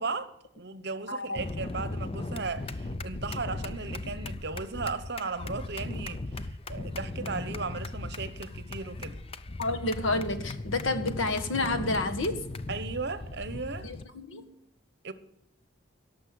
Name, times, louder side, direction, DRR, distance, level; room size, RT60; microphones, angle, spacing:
voice 1, 0.0-6.4 6.7-9.2 12.7-13.9 15.0-15.1, right 4 dB, 55° right, 1.0 m, -36 dB
voice 2, 1.1-1.4 9.6-12.4 13.8-14.5, left 2 dB, 85° left, 1.6 m, -30 dB
sound 1, 1.4-14.0, left 2 dB, 30° left, 0.5 m, -37 dB
17.5 x 6.9 x 7.8 m
head